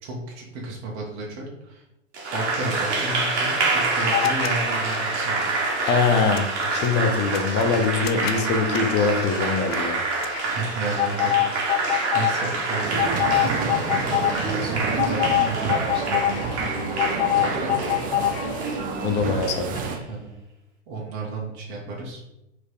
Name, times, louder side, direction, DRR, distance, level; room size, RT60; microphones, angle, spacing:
voice 1, 0.0-1.8 2.3-5.6 10.4-13.8 14.2-16.8 17.3-18.0 18.7-19.3 20.1-20.3 20.9-22.2, right 3 dB, 40° right, -2 dB, 1.9 m, -33 dB
Applause, 2.1-20.0, right 3 dB, 60° right, 2.0 m, -27 dB
sound 1, 4.1-4.5 4.8-18.8, left 13 dB, 50° left, 0.7 m, -27 dB
voice 2, 5.8-10.0 19.0-19.8, left 4 dB, 30° left, 7 dB, 0.9 m, -23 dB
sound 2, 12.8-20.0, right 5 dB, 20° right, 0.7 m, -29 dB
4.7 x 4.7 x 5.0 m, 0.89 s
figure-of-eight pair, 105°, 38 cm